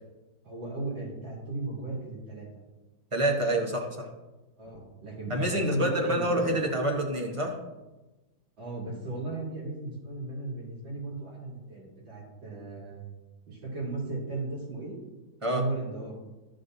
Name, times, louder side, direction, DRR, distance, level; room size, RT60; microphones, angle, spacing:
voice 1, 0.4-2.5 4.6-6.6 8.6-13.0 13.5-15.0 15.5-16.2, right 3 dB, 75° right, -6 dB, 4.2 m, -36 dB
voice 2, 3.1-4.1 5.3-7.6 15.4-15.6, right 1 dB, 25° right, 1 dB, 0.8 m, -27 dB
14.0 x 6.4 x 2.7 m, 1.1 s
omnidirectional pair, 2.1 m